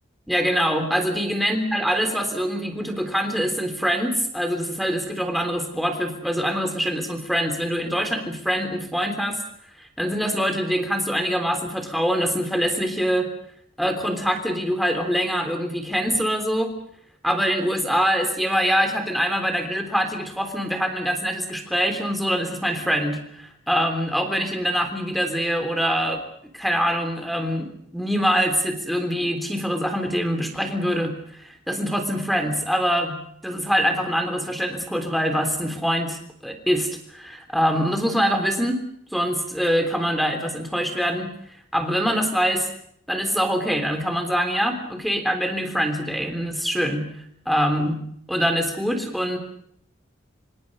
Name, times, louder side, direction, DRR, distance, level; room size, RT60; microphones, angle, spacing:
voice 1, 0.3-9.4 9.8-13.3 13.8-16.7 17.2-26.2 26.5-38.8 39.1-41.3 41.7-42.7 43.1-47.1 47.5-48.0 48.3-49.4, equal, ahead, 6 dB, 3.4 m, -24 dB
26.0 x 26.0 x 5.5 m, 0.69 s
head